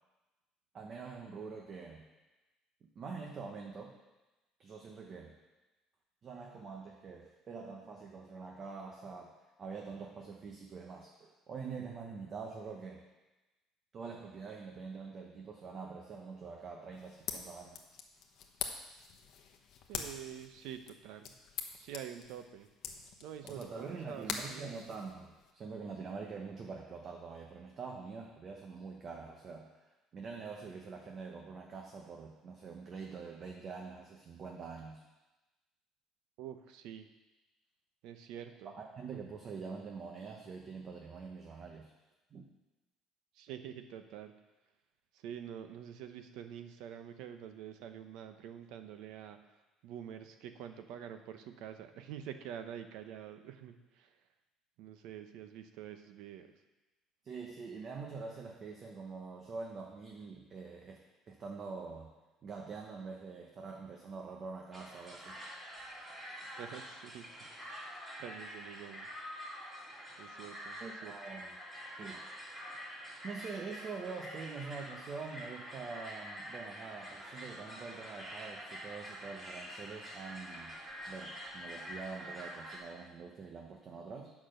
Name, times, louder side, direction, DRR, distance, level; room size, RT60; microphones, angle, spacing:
voice 1, 0.7-2.0 2.9-4.0 4.6-5.3 6.2-9.3 9.6-13.0 13.9-17.8 23.4-35.0 38.6-41.9 42.3-42.4 57.2-62.1 62.4-65.4 70.8-71.6 72.0-72.2 73.2-80.7 81.1-84.3, right 4 dB, 35° right, 1 dB, 1.0 m, -45 dB
sound 1, 16.9-25.5, left 7 dB, 55° left, 1.1 m, -45 dB
voice 2, 19.9-21.3 21.8-22.7 23.2-24.7 36.4-37.1 38.0-38.7 43.3-44.3 45.1-49.4 49.8-54.2 54.8-56.5 66.6-67.5 68.2-69.1 70.2-71.1, right 9 dB, 75° right, 8 dB, 0.8 m, -47 dB
sound 2, 64.7-82.8, equal, 20° right, 2.3 m, -47 dB
8.8 x 6.1 x 6.5 m, 1.1 s
cardioid pair, 150°, 0 cm